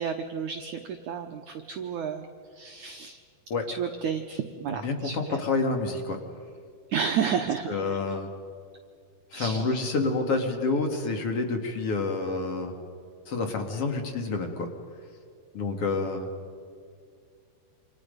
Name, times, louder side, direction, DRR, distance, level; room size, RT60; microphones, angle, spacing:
voice 1, 0.0-2.3 2.5-3.2 3.7-5.4 6.9-7.8 9.3-9.7, right 7 dB, 75° right, 5 dB, 1.8 m, -31 dB
voice 2, 4.8-6.2 7.7-8.3 9.3-12.7 13.3-14.7 15.5-16.3, left 3 dB, 45° left, 4 dB, 2.4 m, -28 dB
28.0 x 27.0 x 5.3 m, 2.2 s
omnidirectional pair, 4.8 m